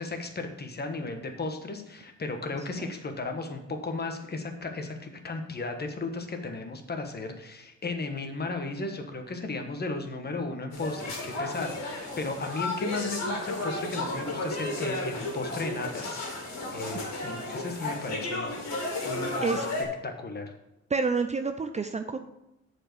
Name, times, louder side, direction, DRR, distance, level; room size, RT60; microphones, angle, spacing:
voice 1, 0.0-18.6 19.0-19.7 20.0-20.5, left 3 dB, 35° left, 5 dB, 1.3 m, -35 dB
sound 1, 10.7-19.8, left 2 dB, 60° left, 2.6 m, -33 dB
voice 2, 20.9-22.2, right 4 dB, 25° right, 8 dB, 0.5 m, -28 dB
7.4 x 4.7 x 6.7 m, 0.88 s
cardioid pair, 90°, 30 cm